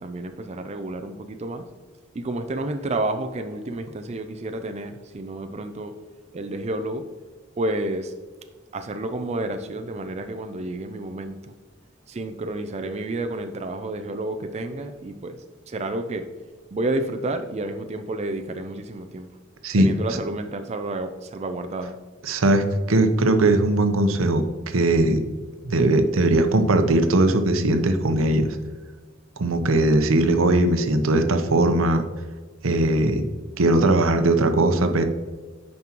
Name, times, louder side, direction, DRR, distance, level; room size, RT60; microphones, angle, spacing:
voice 1, 0.0-1.7 2.1-5.9 6.3-7.0 7.6-8.1 8.7-11.5 12.1-16.2 16.7-19.3 19.8-22.0, right 2 dB, 35° right, 7 dB, 0.4 m, -30 dB
voice 2, 22.2-25.2 25.6-28.5 29.4-32.1 32.6-33.2 33.6-35.0, right 2 dB, 85° right, 7 dB, 0.7 m, -19 dB
9.3 x 5.3 x 2.9 m, 1.4 s
head